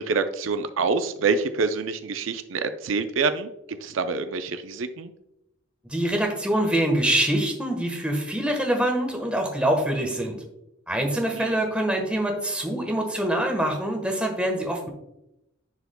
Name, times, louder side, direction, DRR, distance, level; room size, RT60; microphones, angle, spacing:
voice 1, 0.0-5.1 11.3-11.6, right 4 dB, 75° right, 9 dB, 0.5 m, -26 dB
voice 2, 5.9-10.4 10.9-14.9, right 1 dB, 5° right, 2 dB, 1.2 m, -25 dB
10.0 x 4.8 x 2.2 m, 0.85 s
head